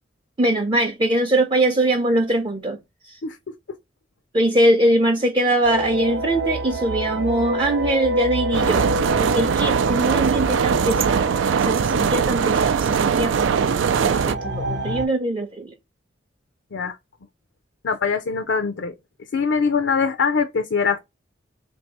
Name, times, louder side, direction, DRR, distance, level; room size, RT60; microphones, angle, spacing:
voice 1, 0.4-2.8 3.0-3.2 4.3-8.9 9.2-11.3 11.7-15.7, right 1 dB, 25° right, 0.5 m, -22 dB
voice 2, 3.2-3.5 16.7-17.0 17.8-18.9 19.3-21.0, left 5 dB, 75° left, 0.5 m, -22 dB
sound 1, 5.6-15.1, right 1 dB, 65° right, 0.8 m, -28 dB
sound 2, 8.5-14.3, right 6 dB, 90° right, 0.4 m, -21 dB
3.3 x 2.7 x 4.6 m
head